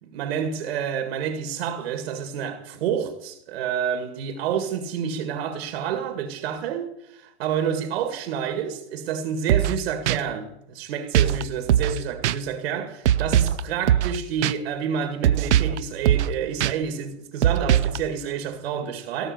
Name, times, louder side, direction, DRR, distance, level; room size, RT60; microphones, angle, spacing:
voice 1, 0.0-19.3, right 8 dB, 65° right, 2.0 m, -29 dB
sound 1, 9.5-9.8 10.1-10.2 11.1-11.4 11.7-12.0 12.2-12.4 13.0-13.6 13.9-14.2 14.4-14.5 15.2-15.8 16.0-16.3 16.6-16.7 17.4-18.0, right 11 dB, 85° right, 0.8 m, -20 dB
18.0 x 6.5 x 8.0 m
supercardioid pair, 145°, 34 cm